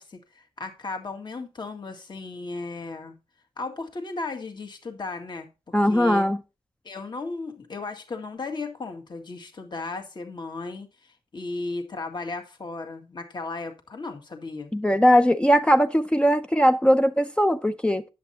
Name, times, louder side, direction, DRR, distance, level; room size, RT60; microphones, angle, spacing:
voice 1, 0.0-3.2 3.6-6.3 6.8-14.7, left 3 dB, 45° left, 1.8 m, -35 dB
voice 2, 5.7-6.4 14.7-18.0, equal, 10° left, 0.5 m, -20 dB
10.5 x 7.7 x 2.8 m
wide cardioid pair, 105°, 10 cm